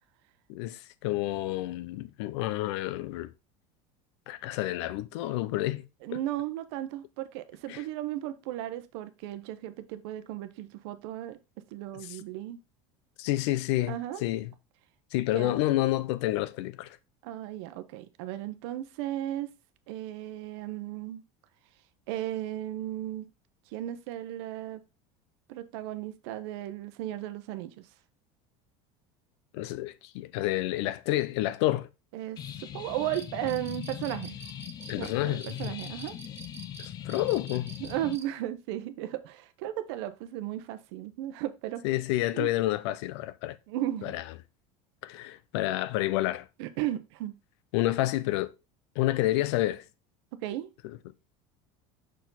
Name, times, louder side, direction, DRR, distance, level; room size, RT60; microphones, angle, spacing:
voice 1, 0.5-3.3 4.3-6.2 7.7-7.8 12.0-12.2 13.2-14.5 15.1-17.0 29.5-31.9 34.9-35.6 36.8-37.8 41.8-43.6 44.0-44.2 45.0-46.5 47.7-48.5 49.0-49.8 50.8-51.0, left 16 dB, 75° left, 0.6 m, -29 dB
voice 2, 6.0-11.4 11.7-12.6 13.8-14.2 15.3-15.6 17.2-19.5 19.9-21.2 22.1-23.3 23.7-24.8 25.5-27.9 32.1-34.4 35.0-36.1 37.8-41.8 42.3-42.5 43.7-44.1 46.6-47.4 50.4-50.7, right 13 dB, 70° right, 0.9 m, -35 dB
sound 1, 32.4-38.2, left 10 dB, 25° left, 0.5 m, -40 dB
sound 2, 32.9-38.2, right 5 dB, 15° right, 0.8 m, -47 dB
6.4 x 4.6 x 3.9 m
cardioid pair, 165°, 15 cm